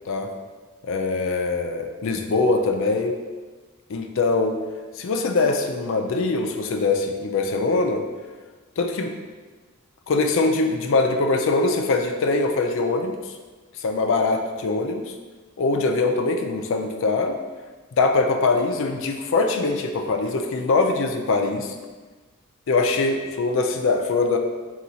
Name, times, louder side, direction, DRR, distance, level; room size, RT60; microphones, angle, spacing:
voice 1, 0.8-3.2 3.9-4.6 5.0-8.0 8.8-9.1 10.1-13.2 13.8-15.1 15.6-17.3 17.9-21.7 22.7-24.4, left 3 dB, 60° left, 4 dB, 0.4 m, -22 dB
4.2 x 2.4 x 3.9 m, 1.4 s
head